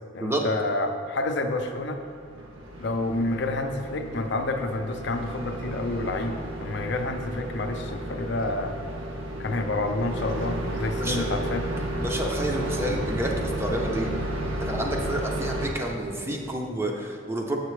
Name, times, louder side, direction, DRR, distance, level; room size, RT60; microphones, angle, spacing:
voice 1, 0.1-2.0 2.8-8.8 9.4-11.7, left 2 dB, 60° left, 5 dB, 0.5 m, -29 dB
sound 1, 1.7-15.7, right 1 dB, 80° right, 0.9 m, -33 dB
voice 2, 12.0-14.1 14.5-17.6, right 1 dB, 10° right, 1 dB, 0.5 m, -29 dB
7.6 x 6.6 x 3.2 m, 2.4 s
head